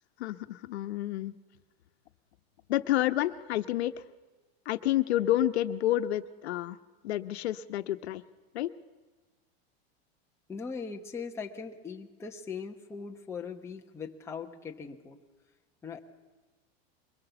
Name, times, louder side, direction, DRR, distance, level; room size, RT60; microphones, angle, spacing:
voice 1, 0.2-1.3 2.7-4.0 4.6-6.8 7.0-8.2 8.5-8.7, left 13 dB, 85° left, 10 dB, 1.0 m, -29 dB
voice 2, 10.5-15.2 15.8-16.0, left 5 dB, 10° left, 1 dB, 1.0 m, -40 dB
23.0 x 21.0 x 7.0 m, 1.3 s
supercardioid pair, 165°, 32 cm